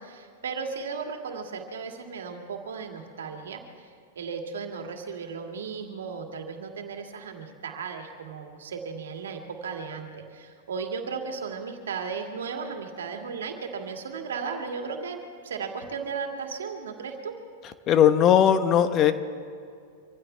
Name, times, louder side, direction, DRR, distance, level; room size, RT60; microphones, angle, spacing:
voice 1, 0.0-3.9 4.2-15.2 15.4-17.3, right 5 dB, 85° right, 3 dB, 2.3 m, -35 dB
voice 2, 17.9-19.1, left 9 dB, 35° left, 11 dB, 1.0 m, -18 dB
26.0 x 16.0 x 3.4 m, 2.2 s
hypercardioid pair, 115°, 0 cm